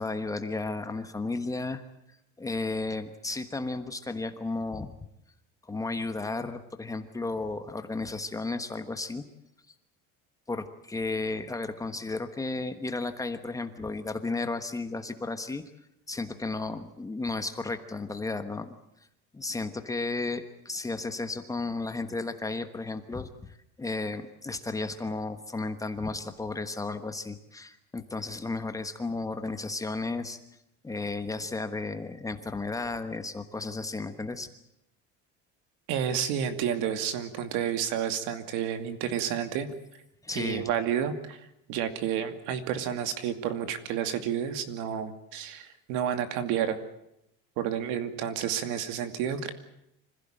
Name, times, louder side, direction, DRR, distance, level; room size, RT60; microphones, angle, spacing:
voice 1, 0.0-1.8 2.4-5.0 5.7-9.2 10.5-15.6 16.1-18.7 19.3-30.4 30.8-34.5 40.2-40.7, left 3 dB, 10° left, 8 dB, 1.2 m, -33 dB
voice 2, 35.9-39.7 40.3-41.4 41.7-46.8 47.6-49.5, right 9 dB, 70° right, 9 dB, 2.5 m, -30 dB
25.5 x 16.0 x 9.0 m, 0.83 s
cardioid pair, 160°, 31 cm